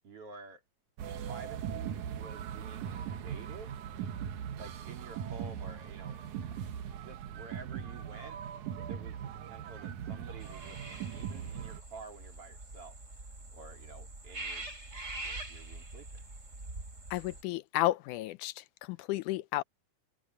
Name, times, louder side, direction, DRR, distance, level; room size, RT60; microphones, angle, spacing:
voice 1, 0.0-0.6 1.2-3.8 4.6-6.2 6.5-6.6 7.0-8.4 8.8-13.0 13.5-14.7 15.2-16.1, right 4 dB, 50° right, 3.6 m, -50 dB
sound 1, 1.0-11.8, right 8 dB, 75° right, 2.6 m, -40 dB
sound 2, 10.4-17.4, right 2 dB, 20° right, 4.2 m, -44 dB
voice 2, 17.1-18.5 18.9-19.6, left 17 dB, 85° left, 2.1 m, -32 dB
omnidirectional pair, 3.6 m